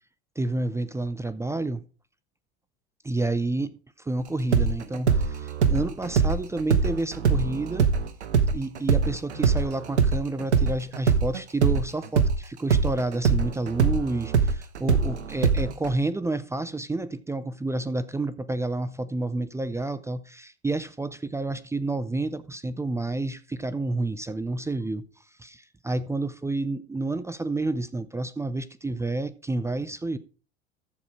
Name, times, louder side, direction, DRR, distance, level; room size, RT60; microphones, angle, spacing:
voice 1, 0.4-1.8 3.0-7.9 8.5-25.0 25.4-30.2, right 2 dB, 10° right, 0.5 m, -30 dB
sound 1, 4.5-12.4 12.7-15.9, right 5 dB, 80° right, 1.1 m, -22 dB
14.0 x 5.0 x 4.7 m
hypercardioid pair, 80°, 33 cm